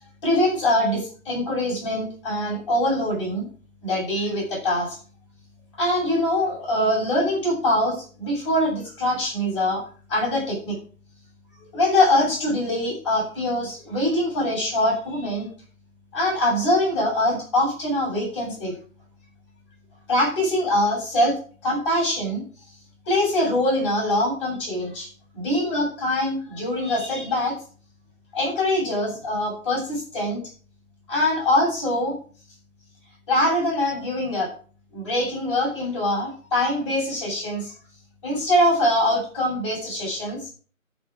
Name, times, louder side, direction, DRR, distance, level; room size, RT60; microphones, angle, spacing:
voice 1, 0.2-3.4 3.8-5.0 5.8-9.8 10.1-10.8 11.7-15.5 16.1-18.7 20.1-21.3 21.6-22.4 23.1-25.1 25.3-27.5 28.3-30.4 31.1-32.1 33.3-34.5 34.9-37.7 38.2-40.5, left 1 dB, 20° left, -5 dB, 7.8 m, -23 dB
12.5 x 6.2 x 6.7 m, 0.40 s
figure-of-eight pair, 160°, 41 cm